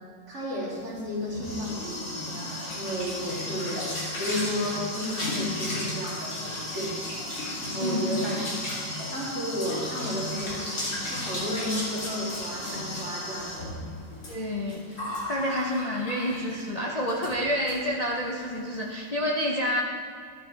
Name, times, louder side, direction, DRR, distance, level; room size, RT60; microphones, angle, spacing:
voice 1, 0.3-3.9 4.2-8.4 9.1-13.9, equal, 40° right, -7 dB, 3.0 m, -33 dB
sound 1, 1.0-16.7 17.1-17.3 17.7-17.8 18.1-18.4, left 1 dB, 85° left, 3.6 m, -34 dB
voice 2, 7.8-8.3 14.3-15.0 15.3-19.8, left 1 dB, 60° left, -2 dB, 0.4 m, -29 dB
13.0 x 9.7 x 3.3 m, 2.2 s
omnidirectional pair, 2.0 m